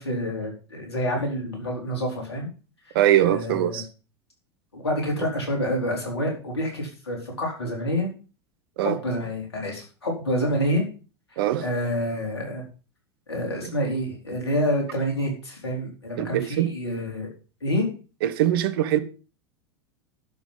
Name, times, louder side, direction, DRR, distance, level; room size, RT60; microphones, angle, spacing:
voice 1, 0.0-2.5 3.2-3.8 4.7-8.1 8.8-10.8 11.3-12.6 13.3-17.3 17.6-17.9, equal, 80° left, 4.3 m, -28 dB
voice 2, 2.9-3.9 8.8-9.0 11.4-11.6 16.2-16.7 18.2-19.0, right 12 dB, 60° right, 1.2 m, -22 dB
11.5 x 6.3 x 5.5 m
figure-of-eight pair, 85°, 13 cm